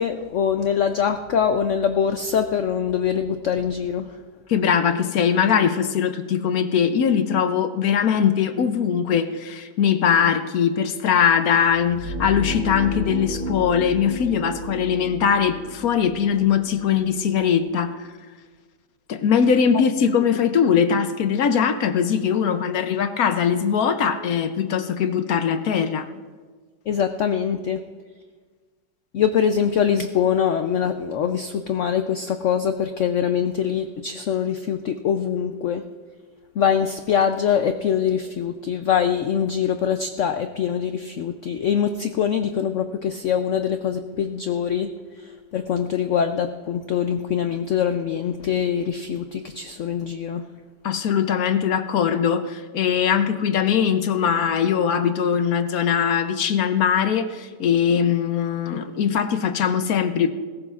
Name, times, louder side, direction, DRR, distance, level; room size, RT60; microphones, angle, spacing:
voice 1, 0.0-4.2 26.9-27.8 29.1-35.9 36.6-44.9 45.2-50.4, left 8 dB, 85° left, 8 dB, 0.6 m, -23 dB
voice 2, 4.5-18.1 19.1-26.1 50.8-60.3, left 7 dB, 65° left, 9 dB, 1.0 m, -21 dB
sound 1, 11.6-17.6, left 1 dB, 50° right, 3.4 m, -33 dB
20.5 x 17.0 x 2.4 m, 1.5 s
omnidirectional pair, 2.0 m